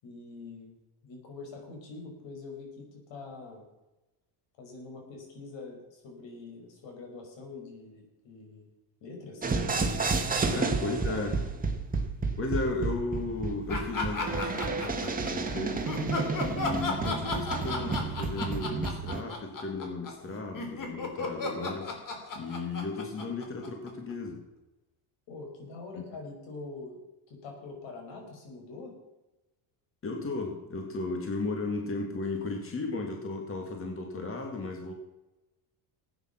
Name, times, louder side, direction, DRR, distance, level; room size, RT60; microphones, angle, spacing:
voice 1, 0.0-0.8 1.0-3.6 4.6-8.7 9.0-9.5 10.5-11.2 25.3-27.0 27.3-29.0, left 3 dB, 75° left, 2 dB, 5.7 m, -44 dB
sound 1, 9.4-19.2, right 4 dB, 20° right, 1.8 m, -31 dB
voice 2, 10.5-11.4 12.4-15.9 16.4-21.9 22.3-24.4 30.0-34.9, left 3 dB, 30° left, 2 dB, 2.3 m, -35 dB
sound 2, 13.7-15.3 15.8-24.1, left 3 dB, 45° left, 3.3 m, -34 dB
16.0 x 9.3 x 6.0 m, 1.0 s
cardioid pair, 125°, 45 cm